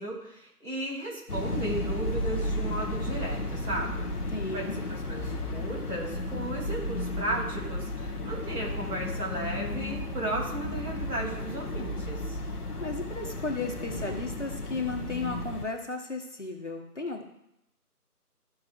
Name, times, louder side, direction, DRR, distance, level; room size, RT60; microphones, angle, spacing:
voice 1, 0.0-4.0 4.5-12.4, right 1 dB, 90° right, -1 dB, 3.0 m, -35 dB
sound 1, 1.3-15.7, left 1 dB, 75° left, 1.1 m, -33 dB
voice 2, 4.3-4.8 12.8-17.2, left 3 dB, 50° left, 1 dB, 1.3 m, -34 dB
13.5 x 4.7 x 2.5 m, 0.82 s
figure-of-eight pair, 175°, 46 cm